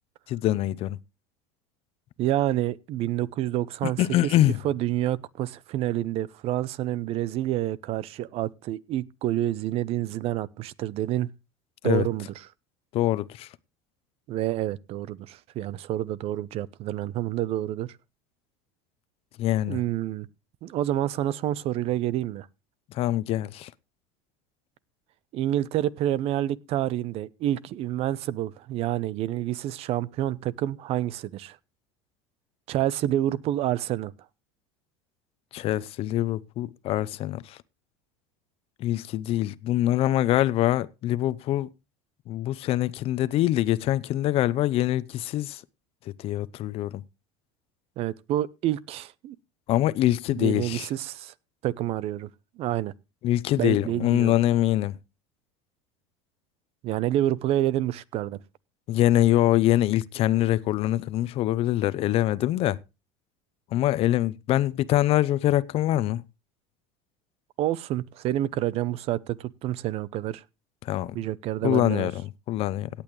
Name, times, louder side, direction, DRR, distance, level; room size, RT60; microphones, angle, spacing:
voice 1, 0.3-1.0 3.8-4.6 11.8-12.1 12.9-13.5 19.4-19.8 22.9-23.7 35.5-37.6 38.8-41.7 42.3-45.6 46.2-47.0 49.7-50.9 53.2-55.0 58.9-62.8 63.7-66.2 70.8-71.2 71.6-72.9, left 14 dB, 50° left, 0.7 m, -24 dB
voice 2, 2.2-4.0 4.6-11.3 11.8-12.3 14.3-17.9 19.7-20.3 20.6-22.5 25.3-31.6 32.7-34.1 48.0-49.4 50.3-51.3 51.6-52.3 52.6-52.9 53.6-54.3 56.8-58.4 67.6-70.4 71.1-72.1, right 13 dB, 50° right, 0.8 m, -28 dB
17.5 x 8.7 x 3.2 m
supercardioid pair, 110°, 13 cm